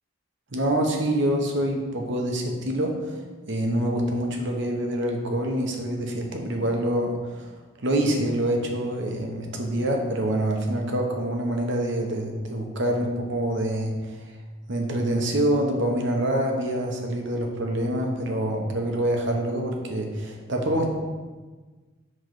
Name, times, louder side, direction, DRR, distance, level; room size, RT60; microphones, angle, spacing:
voice 1, 0.5-3.2 3.5-7.5 7.8-14.3 14.7-20.9, right 1 dB, 60° right, 2 dB, 1.0 m, -26 dB
7.7 x 3.3 x 5.9 m, 1.3 s
head